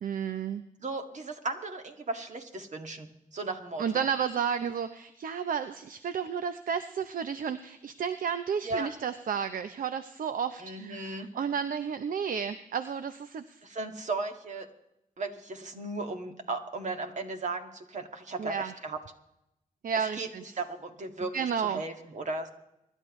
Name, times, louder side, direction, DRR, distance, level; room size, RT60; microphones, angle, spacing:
voice 1, 0.0-0.6 3.8-13.6 18.4-18.7 19.8-20.6 21.3-21.8, right 7 dB, 70° right, 11 dB, 0.7 m, -32 dB
voice 2, 0.8-4.1 8.6-8.9 10.6-11.3 13.6-14.7 15.2-19.0 20.1-20.3 20.6-21.3 21.6-22.5, right 3 dB, 55° right, 5 dB, 2.1 m, -36 dB
25.0 x 12.0 x 3.2 m, 0.85 s
cardioid pair, 75°, 15 cm